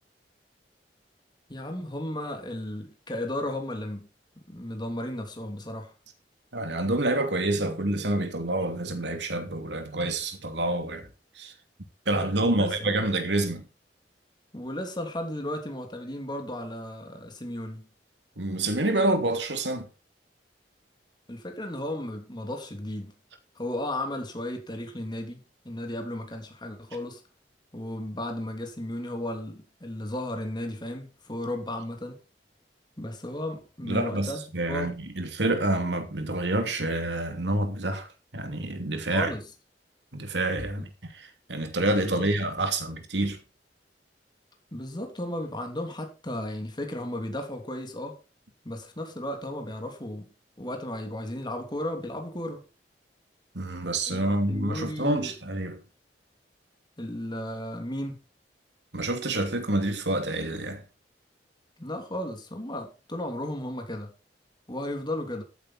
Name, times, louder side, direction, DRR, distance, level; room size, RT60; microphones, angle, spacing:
voice 1, 1.5-4.1 4.5-5.9 12.4-12.9 14.5-17.9 21.3-23.1 23.5-27.2 27.7-32.2 33.0-34.4 34.7-34.9 39.1-39.4 42.0-42.3 44.7-48.2 48.6-50.3 50.6-52.6 54.1-55.3 57.0-58.2 61.8-64.1 64.7-65.4, left 1 dB, 25° left, 3.1 m, -34 dB
voice 2, 6.5-11.1 11.3-11.5 12.1-13.7 18.4-19.9 33.8-39.3 40.1-43.4 53.5-55.8 58.9-60.8, right 2 dB, 85° right, 2.8 m, -28 dB
14.0 x 8.9 x 4.3 m
head